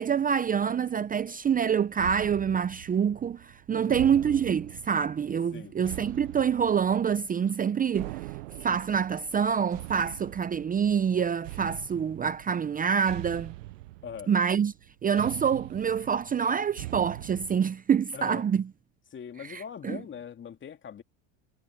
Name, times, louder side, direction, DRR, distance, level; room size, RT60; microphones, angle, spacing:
voice 1, 0.0-8.2 8.6-13.5 14.3-14.7 15.0-18.7 19.4-20.0, right 7 dB, 20° right, 0.8 m, -26 dB
sound 1, 2.0-17.6, right 19 dB, 80° right, 0.9 m, -43 dB
voice 2, 3.7-4.0 5.5-5.7 14.0-14.3 18.1-18.4 19.1-21.0, left 8 dB, 30° left, 2.6 m, -41 dB
hypercardioid pair, 95°, 38 cm